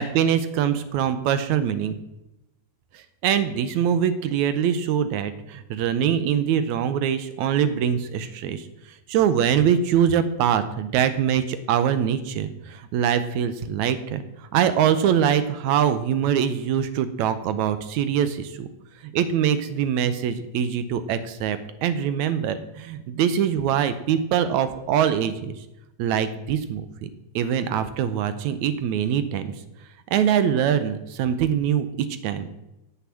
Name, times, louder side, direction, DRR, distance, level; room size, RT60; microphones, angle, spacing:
voice 1, 0.0-2.0 2.9-8.7 9.1-18.7 19.0-25.6 26.0-27.1 27.4-29.5 30.1-32.5, right 9 dB, 80° right, 12 dB, 1.9 m, -23 dB
9.3 x 7.0 x 7.3 m, 0.92 s
omnidirectional pair, 3.6 m